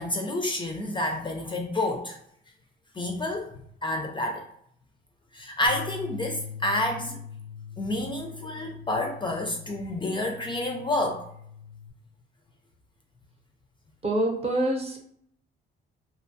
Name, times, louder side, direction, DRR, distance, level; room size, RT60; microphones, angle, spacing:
voice 1, 0.0-2.2 2.9-3.5 3.8-4.5 5.3-7.2 7.8-11.3, left 1 dB, 25° left, 3 dB, 0.4 m, -29 dB
sound 1, 5.7-11.9, left 7 dB, 75° right, 0.8 m, -42 dB
voice 2, 14.0-15.0, right 1 dB, 30° right, 2 dB, 0.7 m, -26 dB
2.7 x 2.2 x 2.6 m, 0.68 s
cardioid pair, 90°, 20 cm